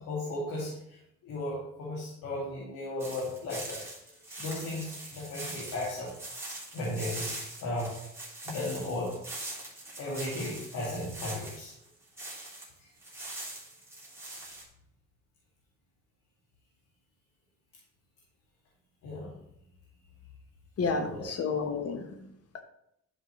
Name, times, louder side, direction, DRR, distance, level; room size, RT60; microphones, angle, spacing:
voice 1, 0.0-4.1 4.4-6.1 6.7-8.0 8.4-9.2 10.0-11.7 12.8-12.9 19.0-19.3 20.8-21.2, left 1 dB, 85° left, -6 dB, 2.4 m, -36 dB
sound 1, 3.0-12.7 13.0-14.6, right 1 dB, 10° right, 3.1 m, -42 dB
voice 2, 20.8-22.3 22.5-22.6, left 4 dB, 55° left, 6 dB, 1.2 m, -31 dB
11.5 x 5.3 x 3.2 m, 0.77 s
cardioid pair, 90°, 30 cm